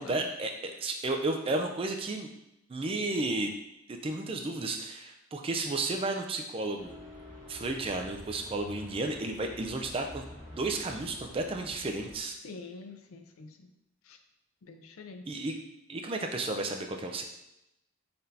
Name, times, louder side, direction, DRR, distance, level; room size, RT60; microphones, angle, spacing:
voice 1, 0.0-2.3 2.7-3.5 3.9-6.9 7.5-10.2 10.5-12.4 15.3-15.5 15.9-17.2, right 2 dB, 25° right, 4 dB, 0.3 m, -33 dB
sound 1, 6.8-12.2, left 1 dB, 15° left, 1.5 m, -48 dB
voice 2, 12.4-13.7 14.0-14.2 14.6-15.3, left 4 dB, 80° left, 6 dB, 0.5 m, -46 dB
4.0 x 3.3 x 2.7 m, 0.86 s
head